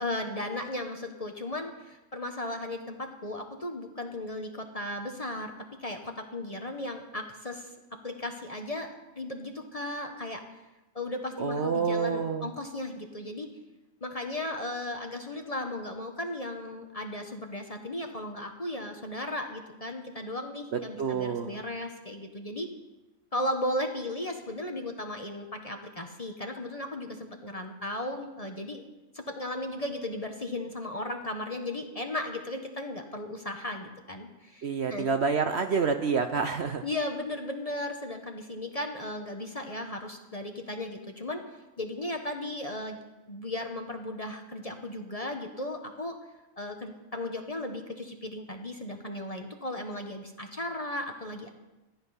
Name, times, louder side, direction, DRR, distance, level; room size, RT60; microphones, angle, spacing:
voice 1, 0.0-5.5 5.8-7.7 8.0-8.9 9.1-10.4 10.9-13.5 14.0-22.7 23.3-28.8 29.1-35.1 36.8-41.4 41.8-43.0 43.3-46.2 46.6-51.5, left 1 dB, 30° left, 4 dB, 0.9 m, -36 dB
voice 2, 11.4-12.5 20.7-21.6 34.6-36.8, right 5 dB, 55° right, 7 dB, 0.8 m, -28 dB
14.0 x 10.0 x 5.5 m, 1.1 s
omnidirectional pair, 1.5 m